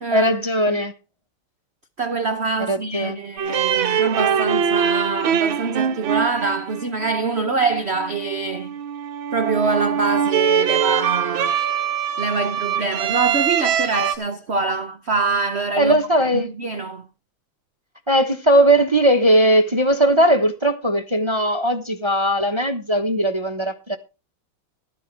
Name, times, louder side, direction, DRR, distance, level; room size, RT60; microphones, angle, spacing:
voice 1, 0.1-0.9 2.7-3.2 15.8-16.5 18.1-24.0, right 1 dB, 30° right, 0.5 m, -18 dB
voice 2, 2.0-8.7 9.3-11.6 12.2-16.0 16.3-17.0, right 4 dB, 85° right, 0.5 m, -24 dB
sound 1, 3.4-14.1, right 8 dB, 70° right, 1.9 m, -23 dB
12.5 x 10.5 x 4.6 m
omnidirectional pair, 2.4 m